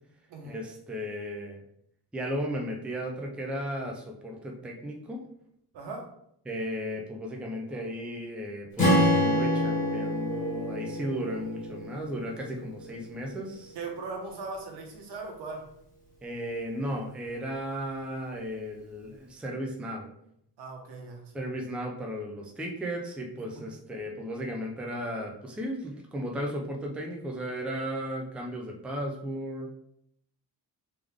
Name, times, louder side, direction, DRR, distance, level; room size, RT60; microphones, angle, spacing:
voice 1, 0.4-1.6 2.1-5.2 6.5-13.8 16.2-20.0 21.3-29.7, equal, 5° right, 0 dB, 0.3 m, -35 dB
voice 2, 5.7-6.1 13.7-15.7 20.6-21.4 23.5-23.6, right 3 dB, 90° right, 1 dB, 1.1 m, -39 dB
Strum, 8.8-13.0, left 1 dB, 20° left, 1.4 m, -27 dB
3.5 x 3.3 x 3.5 m, 0.74 s
wide cardioid pair, 175°, 40 cm